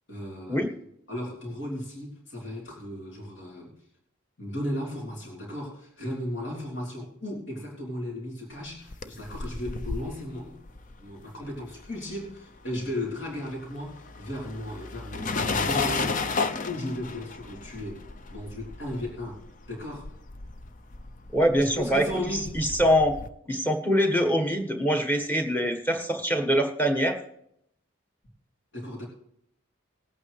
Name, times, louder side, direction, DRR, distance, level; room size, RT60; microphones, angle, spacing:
voice 1, 0.1-0.6 1.1-3.7 4.4-10.6 11.0-19.4 19.7-20.1 21.6-22.5 28.7-29.1, left 1 dB, 60° left, -3 dB, 3.4 m, -35 dB
sound 1, 8.7-12.3 12.6-23.3, left 4 dB, 40° left, 0.5 m, -34 dB
voice 2, 21.3-22.0 22.5-23.2 23.5-27.2, equal, 10° left, 4 dB, 1.4 m, -24 dB
20.0 x 8.7 x 3.2 m, 0.75 s
head